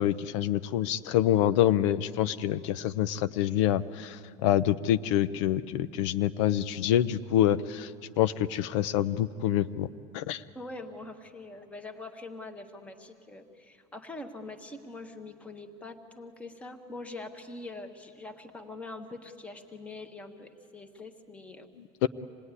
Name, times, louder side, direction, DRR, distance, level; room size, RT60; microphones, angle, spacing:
voice 1, 0.0-7.9 8.2-9.9 10.1-10.4 21.8-22.1, left 12 dB, 85° left, 13 dB, 0.6 m, -26 dB
voice 2, 10.5-21.7, left 2 dB, 10° left, 6 dB, 1.2 m, -43 dB
26.0 x 19.5 x 9.7 m, 2.3 s
cardioid pair, 175°, 15 cm